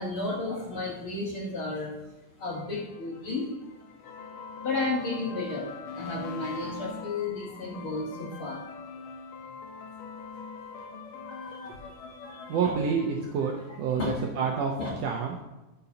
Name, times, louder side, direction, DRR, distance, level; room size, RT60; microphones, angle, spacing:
voice 1, 0.0-1.9 2.4-3.4 4.6-5.7 6.0-8.6 11.2-11.7 12.2-12.7 14.0-14.5 14.8-14.9, left 3 dB, 50° left, -3 dB, 1.8 m, -33 dB
sound 1, 2.5-14.3, left 4 dB, 90° left, 2.6 m, -43 dB
voice 2, 12.5-15.4, right 6 dB, 75° right, 1 dB, 1.6 m, -28 dB
13.0 x 6.8 x 2.8 m, 1.0 s
omnidirectional pair, 3.7 m